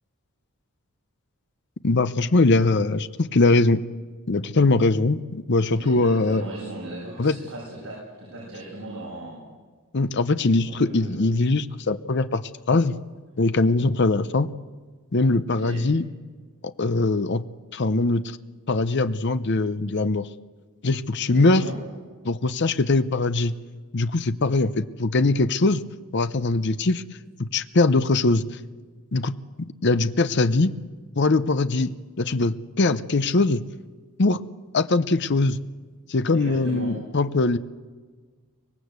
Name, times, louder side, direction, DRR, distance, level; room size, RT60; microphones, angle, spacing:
voice 1, 1.8-3.8 4.3-6.4 7.2-7.4 9.9-13.0 13.4-14.5 15.1-16.0 16.6-17.4 17.7-18.4 18.7-20.3 20.8-21.6 22.2-23.6 23.9-25.8 26.1-27.0 27.4-28.4 29.1-29.3 29.8-30.7 31.2-31.9 32.2-33.6 34.2-34.4 34.7-35.6 36.1-37.6, left 3 dB, 50° left, 12 dB, 0.7 m, -21 dB
voice 2, 5.8-9.4 10.6-11.3 15.5-15.8 21.3-21.8 36.3-37.0, right 1 dB, 75° right, -5 dB, 7.6 m, -37 dB
24.5 x 19.5 x 8.1 m, 1.5 s
head